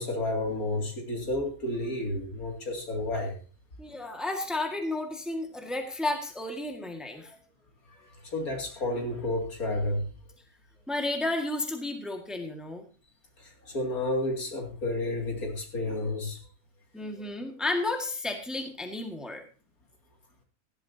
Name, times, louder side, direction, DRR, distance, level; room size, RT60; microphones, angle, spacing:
voice 1, 0.0-3.4 7.9-10.0 13.4-16.4, left 1 dB, 75° left, 2 dB, 3.1 m, -31 dB
voice 2, 3.8-7.4 10.9-12.8 16.9-19.4, left 2 dB, ahead, 3 dB, 1.7 m, -32 dB
16.5 x 12.0 x 2.8 m, 0.35 s
omnidirectional pair, 1.6 m